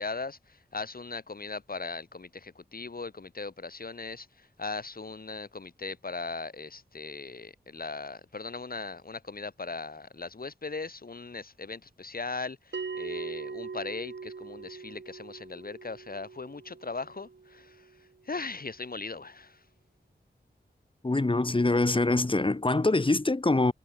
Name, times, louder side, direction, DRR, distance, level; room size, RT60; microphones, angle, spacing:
voice 1, 0.0-17.9 18.3-19.6, left 3 dB, 50° left, 1.9 m, -39 dB
Bell, 12.7-17.8, right 5 dB, 75° right, 4.0 m, -41 dB
voice 2, 21.0-23.7, left 2 dB, 25° left, 1.1 m, -24 dB
cardioid pair, 45°, 19 cm